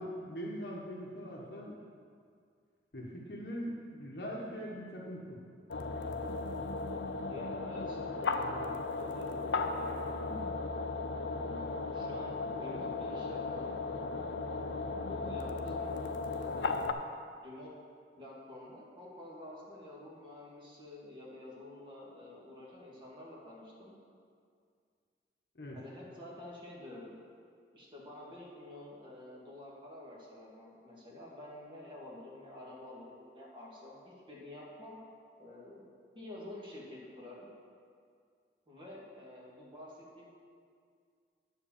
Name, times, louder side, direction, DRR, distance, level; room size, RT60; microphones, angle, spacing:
voice 1, 0.0-1.8 2.9-5.4 25.5-25.8, equal, 60° left, -3 dB, 1.2 m, -41 dB
sound 1, 5.7-16.9, left 3 dB, 80° left, 0.5 m, -36 dB
voice 2, 7.3-9.7 10.3-10.5 11.3-14.5 15.0-16.0 16.4-16.8 17.4-17.7 18.2-23.9 25.7-27.2 27.7-35.0 35.4-35.8 36.1-37.5 38.7-40.3, left 1 dB, 25° right, -5 dB, 1.9 m, -49 dB
9.6 x 4.9 x 7.1 m, 2.2 s
head